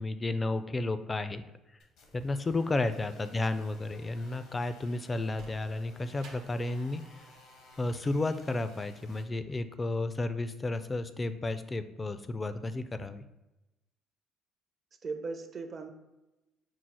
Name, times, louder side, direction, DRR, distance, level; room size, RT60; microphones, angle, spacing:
voice 1, 0.0-1.4 2.1-7.2 7.8-13.2, left 2 dB, 25° left, 11 dB, 0.3 m, -32 dB
sound 1, 1.8-9.2, left 2 dB, 75° left, 0.8 m, -56 dB
Sliding door, 5.1-10.0, right 4 dB, 75° right, 0.8 m, -57 dB
voice 2, 15.0-15.9, right 4 dB, 45° right, 6 dB, 0.6 m, -38 dB
4.6 x 2.0 x 4.1 m, 0.97 s
supercardioid pair, 70°, 0 cm